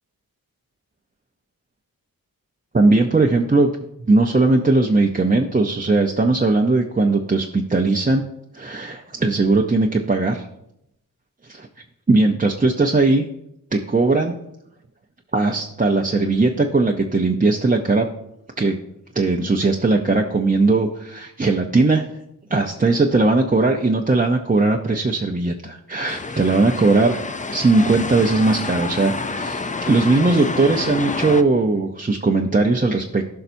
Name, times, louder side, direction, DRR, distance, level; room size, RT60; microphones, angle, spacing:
voice 1, 2.7-3.7 4.0-8.2 8.5-10.5 11.5-11.7 12.1-13.2 13.7-14.4 15.3-18.1 18.6-18.8 19.1-22.1 22.5-27.2 27.5-33.2, right 3 dB, 25° right, 1 dB, 0.6 m, -19 dB
sound 1, 26.1-31.4, left 3 dB, 20° left, 0.4 m, -28 dB
16.0 x 5.7 x 2.7 m, 0.79 s
wide cardioid pair, 85°, 36 cm